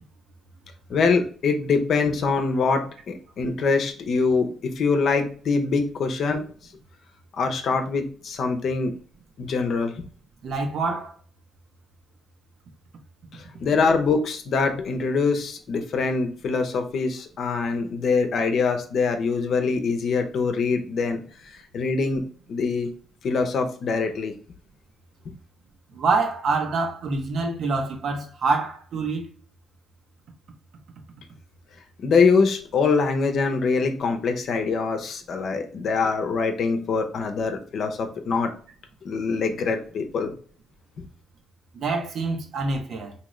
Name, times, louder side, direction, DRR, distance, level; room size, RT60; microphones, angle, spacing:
voice 1, 0.9-6.4 7.4-8.9 9.4-10.0 13.3-22.2 22.5-22.9 23.2-24.3 25.2-25.3 32.0-38.5 39.0-40.3, left 4 dB, 60° left, 0.7 m, -24 dB
voice 2, 10.4-11.1 25.9-29.3 41.7-43.1, right 3 dB, 65° right, 0.8 m, -26 dB
3.7 x 2.9 x 3.1 m
cardioid pair, 90°, 0 cm